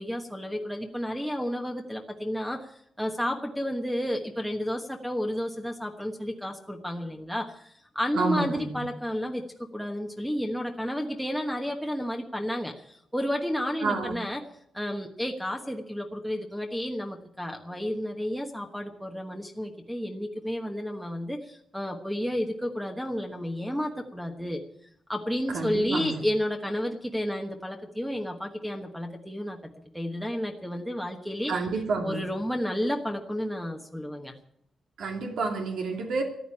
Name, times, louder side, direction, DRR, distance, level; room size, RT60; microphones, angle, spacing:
voice 1, 0.0-9.4 9.7-14.4 14.7-24.6 25.1-29.6 29.9-31.5 32.0-34.3, equal, ahead, 3 dB, 1.3 m, -31 dB
voice 2, 8.1-8.9 13.8-14.2 25.5-26.2 31.5-32.3 35.0-36.2, right 4 dB, 75° right, 2 dB, 2.7 m, -29 dB
14.5 x 11.0 x 8.6 m, 0.73 s
wide cardioid pair, 165°, 0 cm